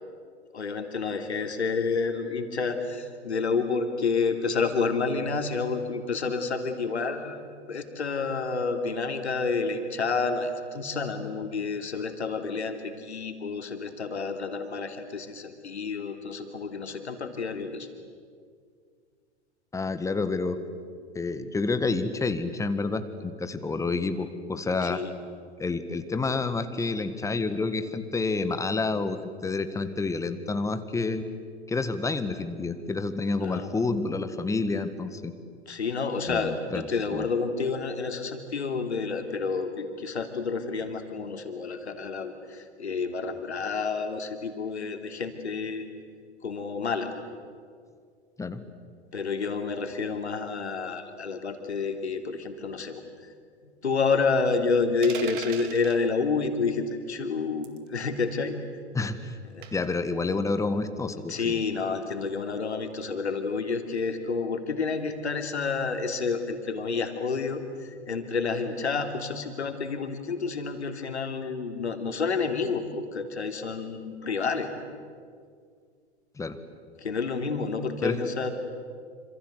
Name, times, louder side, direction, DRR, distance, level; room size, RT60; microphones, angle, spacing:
voice 1, 0.5-17.9 24.8-25.1 33.4-33.7 35.7-45.8 46.4-47.2 49.1-53.0 53.6-58.6 59.5-59.7 61.3-74.7 77.0-78.6, left 4 dB, 75° left, 6 dB, 3.3 m, -29 dB
voice 2, 19.7-20.6 21.2-25.0 25.6-31.2 31.7-35.3 36.3-37.3 48.4-48.6 58.9-59.4 59.7-61.6 76.4-76.6 78.0-78.2, left 3 dB, 10° left, 10 dB, 1.7 m, -29 dB
sound 1, 55.0-56.0 57.6-57.9 59.6-59.9, right 10 dB, 45° right, 2.5 m, -38 dB
27.5 x 26.5 x 8.1 m, 2.1 s
figure-of-eight pair, 100°, 34 cm